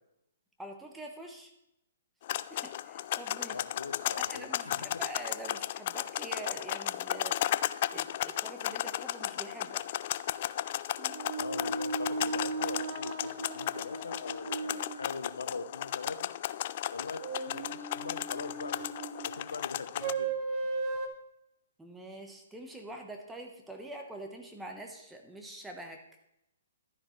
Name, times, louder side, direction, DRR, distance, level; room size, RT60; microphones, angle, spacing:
voice 1, 0.6-1.5 2.5-3.6 4.2-7.4 7.9-9.8 21.8-26.0, right 1 dB, 5° right, 2 dB, 1.1 m, -45 dB
sound 1, 2.2-20.1, left 13 dB, 45° left, 0.3 m, -35 dB
voice 2, 3.5-4.9 11.4-16.3 16.9-20.3, left 4 dB, 75° left, 11 dB, 0.9 m, -42 dB
sound 2, 11.0-15.1 17.2-19.4 20.0-21.1, right 3 dB, 35° right, 1.3 m, -36 dB
12.0 x 10.0 x 3.2 m, 0.82 s
figure-of-eight pair, 125°, 0 cm